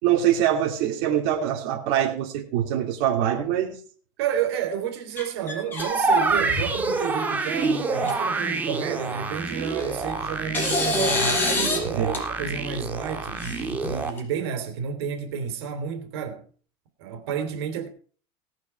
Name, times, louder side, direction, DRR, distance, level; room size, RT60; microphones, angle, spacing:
voice 1, 0.0-3.8 11.9-12.1, right 10 dB, 55° right, 2.8 m, -23 dB
voice 2, 4.2-16.4 17.0-17.9, right 8 dB, 80° right, 3.4 m, -30 dB
sound 1, 5.2-5.9 6.3-6.8 7.6-7.7 8.0-8.1 9.5-10.0 10.5-11.8 12.1-12.2 13.4-14.2, left 2 dB, 15° left, 5.2 m, -26 dB
sound 2, 5.8-14.1, right 3 dB, 15° right, 1.7 m, -27 dB
18.5 x 9.5 x 4.7 m
supercardioid pair, 165°, 13 cm